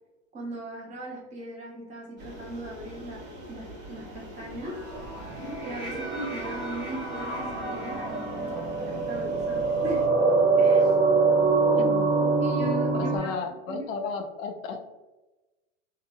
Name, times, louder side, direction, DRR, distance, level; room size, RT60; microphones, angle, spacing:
voice 1, 0.3-4.8 5.6-10.1 10.6-11.0 12.4-13.3 13.7-13.9, right 1 dB, 20° right, -3 dB, 0.7 m, -38 dB
sound 1, 2.2-10.1, right 1 dB, 45° right, 1.3 m, -44 dB
sound 2, 4.7-13.2, right 4 dB, 15° left, 0.4 m, -25 dB
voice 2, 11.8-12.1 12.9-14.8, left 4 dB, 85° left, 5 dB, 0.6 m, -33 dB
2.8 x 2.0 x 2.6 m, 1.1 s
supercardioid pair, 130°, 38 cm